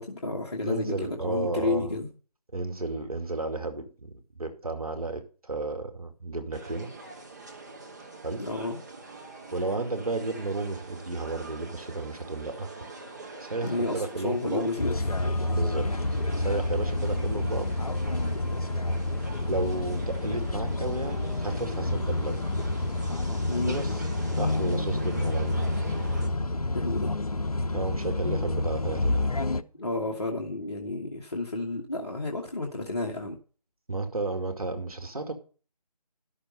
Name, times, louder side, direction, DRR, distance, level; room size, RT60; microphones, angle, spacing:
voice 1, 0.0-2.1 8.4-8.8 13.6-15.2 23.5-23.8 26.7-27.1 29.8-33.4, left 2 dB, 40° left, 1.5 m, -31 dB
voice 2, 0.6-2.0 2.5-4.1 4.4-6.9 8.2-8.5 9.5-12.7 13.4-14.7 15.5-17.8 19.5-22.4 23.7-23.9 24.4-25.6 27.7-29.3 33.9-35.3, right 2 dB, 60° right, 2.3 m, -33 dB
sound 1, 6.5-26.3, right 3 dB, 25° right, 1.4 m, -44 dB
sound 2, 14.8-29.6, left 2 dB, 60° left, 0.8 m, -29 dB
sound 3, 29.7-31.6, right 6 dB, 10° left, 3.1 m, -52 dB
12.0 x 6.6 x 5.3 m
figure-of-eight pair, 160°, 21 cm